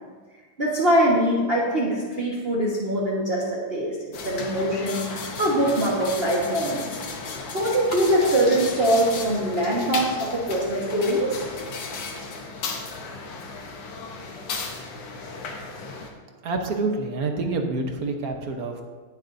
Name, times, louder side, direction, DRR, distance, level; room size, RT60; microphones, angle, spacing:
voice 1, 0.6-3.9 4.2-6.9 7.5-11.4, right 1 dB, 30° right, -6 dB, 1.5 m, -23 dB
sound 1, 4.1-16.1, left 4 dB, 65° left, 1.9 m, -35 dB
voice 2, 16.4-18.8, right 3 dB, 50° right, 3 dB, 1.4 m, -27 dB
19.0 x 7.3 x 2.7 m, 1.4 s
omnidirectional pair, 2.3 m